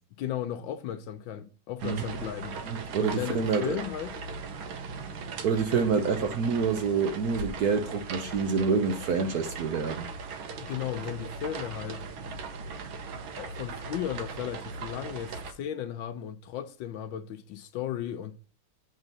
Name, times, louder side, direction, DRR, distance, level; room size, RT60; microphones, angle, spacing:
voice 1, 0.2-2.6 3.0-4.2 5.7-5.8 10.6-12.0 13.4-18.4, left 10 dB, 75° left, 1.4 m, -35 dB
sound 1, 1.8-15.5, right 4 dB, 85° right, 1.8 m, -39 dB
voice 2, 2.7-3.8 5.4-10.1, right 5 dB, 60° right, 1.1 m, -27 dB
8.1 x 3.8 x 5.3 m
omnidirectional pair, 2.2 m